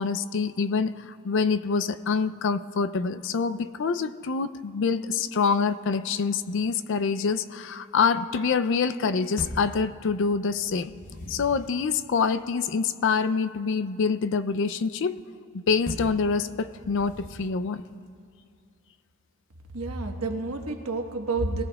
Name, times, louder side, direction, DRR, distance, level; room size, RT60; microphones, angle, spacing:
voice 1, 0.0-10.9 11.3-15.2 15.5-17.8, left 5 dB, 55° left, 12 dB, 0.4 m, -26 dB
sound 1, 9.4-9.8 10.7-11.7 15.9-16.2 16.8-17.6, left 1 dB, 35° left, 0.9 m, -38 dB
voice 2, 19.7-21.6, right 3 dB, 80° right, 3 dB, 1.3 m, -29 dB
22.5 x 17.0 x 2.3 m, 2.3 s
head